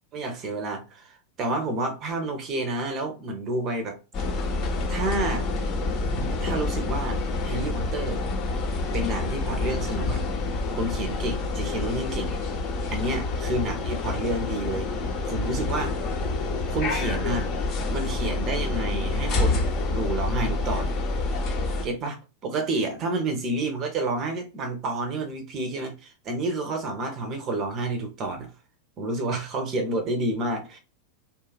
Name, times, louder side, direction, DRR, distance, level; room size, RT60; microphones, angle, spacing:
voice 1, 0.1-4.0 4.9-5.5 6.4-8.2 8.9-10.2 10.8-12.4 12.9-14.9 15.2-16.0 16.7-17.5 17.9-20.9 21.8-22.2 22.4-28.5 29.0-30.8, right 2 dB, 35° right, 0.7 m, -29 dB
sound 1, 4.1-21.8, left 3 dB, 35° left, 0.8 m, -27 dB
2.8 x 2.4 x 2.2 m
figure-of-eight pair, 90°, 0 cm